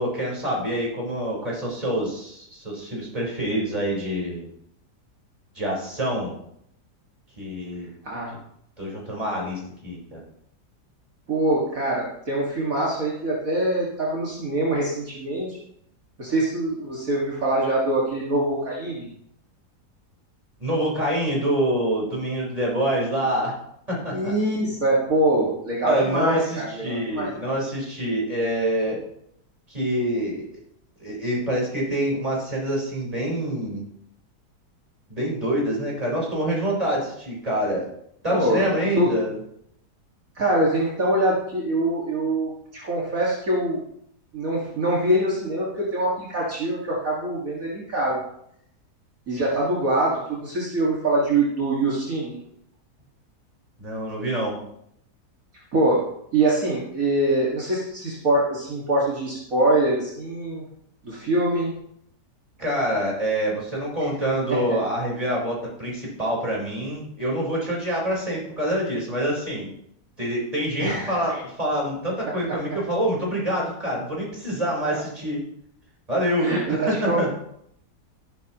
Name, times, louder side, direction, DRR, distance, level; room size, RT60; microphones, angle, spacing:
voice 1, 0.0-4.5 5.5-6.4 7.4-7.9 8.8-10.2 20.6-23.5 23.9-24.3 25.8-29.0 29.7-30.4 31.0-33.8 35.1-37.8 38.2-39.3 53.8-54.6 62.6-69.7 70.2-75.4 76.1-77.3, right 1 dB, 20° right, -3 dB, 4.7 m, -26 dB
voice 2, 8.0-8.4 11.3-15.6 16.2-19.1 24.1-27.3 38.3-38.6 38.9-39.2 40.4-43.8 44.3-48.2 49.3-52.4 55.7-60.6 61.0-61.7 64.0-64.1 64.5-64.8 70.8-71.4 72.3-72.6 76.4-77.3, right 1 dB, 55° right, -5 dB, 2.5 m, -24 dB
14.0 x 11.5 x 3.1 m, 0.73 s
omnidirectional pair, 1.8 m